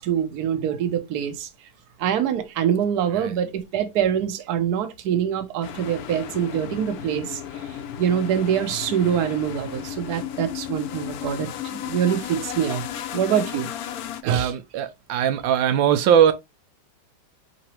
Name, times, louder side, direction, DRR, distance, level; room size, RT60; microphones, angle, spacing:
voice 1, 0.0-1.5 2.0-7.4 8.0-12.8 13.1-13.7 14.2-14.5, right 9 dB, 60° right, 1.3 m, -24 dB
sound 1, 5.6-14.2, left 10 dB, 70° left, 0.9 m, -34 dB
voice 2, 14.2-16.3, right 9 dB, 85° right, 1.4 m, -20 dB
4.5 x 3.9 x 2.9 m
omnidirectional pair, 2.0 m